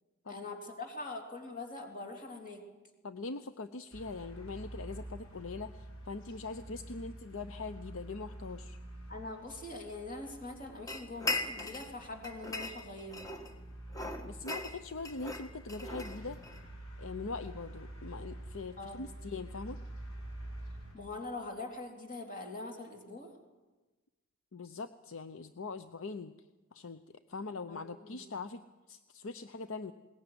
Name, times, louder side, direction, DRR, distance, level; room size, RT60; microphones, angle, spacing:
voice 1, 0.3-2.6 9.1-13.3 18.8-19.0 20.9-23.3 27.7-28.2, left 2 dB, 40° left, 2 dB, 3.7 m, -43 dB
voice 2, 3.0-8.8 14.2-16.4 17.0-19.8 24.5-26.3 26.7-27.0 27.3-28.6 28.9-29.9, left 4 dB, 65° left, 11 dB, 0.7 m, -42 dB
sound 1, 3.9-20.9, right 1 dB, 80° left, 6.9 m, -48 dB
sound 2, 10.9-11.9 12.2-13.5 13.9-16.6, left 3 dB, 15° left, 1.5 m, -38 dB
21.5 x 18.5 x 9.7 m, 1.2 s
head